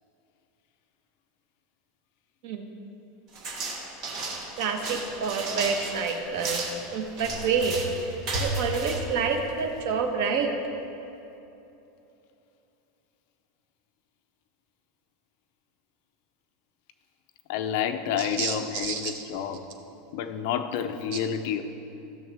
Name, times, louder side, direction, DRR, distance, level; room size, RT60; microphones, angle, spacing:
sound 1, 3.3-9.9, right 2 dB, 35° right, 1.4 m, -34 dB
voice 1, 4.6-6.7 6.9-7.7 8.4-10.5 18.2-19.2 21.1-21.2, right 5 dB, 55° right, 4 dB, 1.0 m, -28 dB
voice 2, 17.5-19.6 20.1-21.6, left 8 dB, 50° left, 8 dB, 0.5 m, -29 dB
16.0 x 6.4 x 3.4 m, 2.9 s
supercardioid pair, 175°, 0 cm